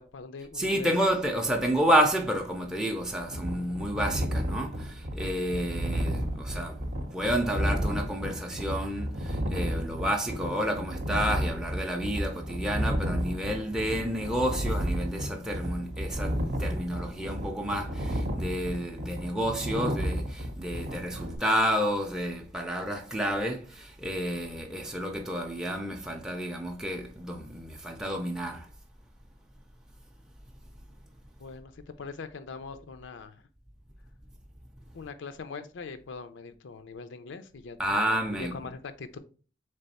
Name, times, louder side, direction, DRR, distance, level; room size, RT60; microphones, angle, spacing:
voice 1, 0.0-0.9 31.4-33.4 34.9-38.1 38.4-39.2, left 4 dB, 85° left, 0.5 m, -42 dB
voice 2, 0.5-28.7 37.8-38.5, equal, 5° right, 0.4 m, -30 dB
sound 1, 3.2-21.4, equal, 50° right, 0.6 m, -32 dB
3.5 x 3.3 x 4.0 m
head